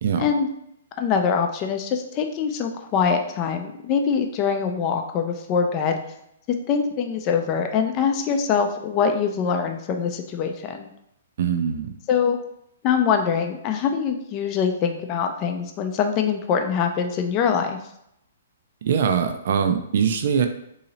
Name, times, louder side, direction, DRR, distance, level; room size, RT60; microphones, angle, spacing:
voice 1, 0.2-0.5 1.0-6.0 6.7-10.9 12.1-12.4 12.8-17.8, left 6 dB, 30° left, 5 dB, 0.5 m, -23 dB
voice 2, 11.4-11.9 18.8-20.5, right 7 dB, 60° right, 7 dB, 0.4 m, -22 dB
2.8 x 2.8 x 4.1 m, 0.76 s
hypercardioid pair, 135°, 0 cm